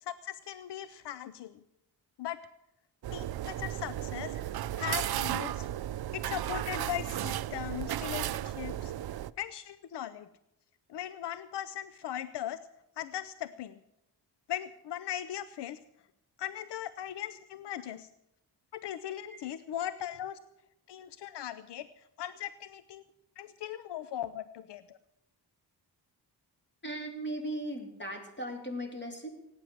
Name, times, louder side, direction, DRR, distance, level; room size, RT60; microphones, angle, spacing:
voice 1, 0.0-1.6 2.2-2.4 3.1-4.4 4.7-5.7 6.1-8.9 9.4-10.3 10.9-12.6 13.0-13.8 14.5-15.8 16.4-18.1 18.7-20.4 20.9-21.9 22.2-23.0 23.4-25.0, left 11 dB, 80° left, 14 dB, 0.7 m, -39 dB
sound 1, 3.0-9.3, right 12 dB, 65° right, 0.5 m, -34 dB
voice 2, 26.8-29.3, right 1 dB, 25° left, 2 dB, 3.5 m, -38 dB
17.0 x 9.4 x 7.8 m, 0.84 s
wide cardioid pair, 105°, 41 cm